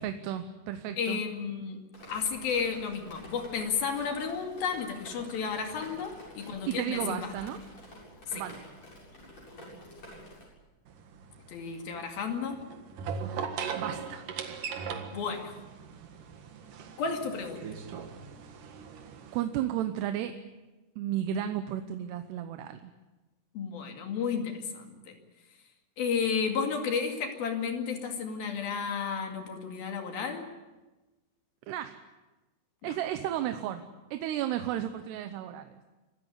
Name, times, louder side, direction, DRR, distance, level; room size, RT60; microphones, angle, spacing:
voice 1, 0.0-1.2 6.4-7.6 8.3-8.6 13.8-14.3 19.3-20.4 21.0-22.9 31.7-32.0 32.8-35.8, right 11 dB, 85° right, 8 dB, 3.0 m, -33 dB
voice 2, 1.0-1.8 2.1-7.3 8.3-8.4 11.5-12.6 15.1-15.5 17.0-17.6 23.5-25.2 26.0-30.4 32.8-33.0, left 6 dB, 65° left, 4 dB, 4.0 m, -32 dB
Drip, 1.9-10.5, equal, 40° left, 8.7 m, -49 dB
sound 1, 10.9-19.4, right 6 dB, 60° right, 3.0 m, -40 dB
26.5 x 15.0 x 9.7 m, 1.1 s
omnidirectional pair, 4.7 m